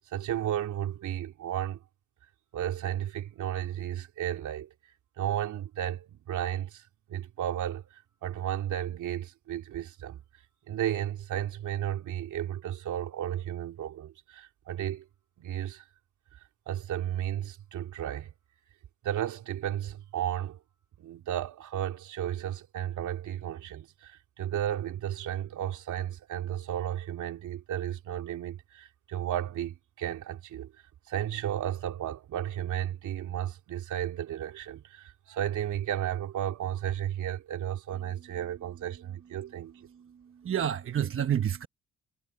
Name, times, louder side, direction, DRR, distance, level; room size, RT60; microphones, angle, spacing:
voice 1, 0.1-1.8 2.5-4.7 5.2-6.8 7.1-10.2 10.7-15.1 15.4-15.8 16.7-18.3 19.0-20.6 21.0-30.7 31.1-39.7, right 11 dB, 75° right, 3.0 m, -33 dB
voice 2, 39.9-41.7, right 9 dB, 45° right, 1.1 m, -30 dB
cardioid pair, 90°, 30 cm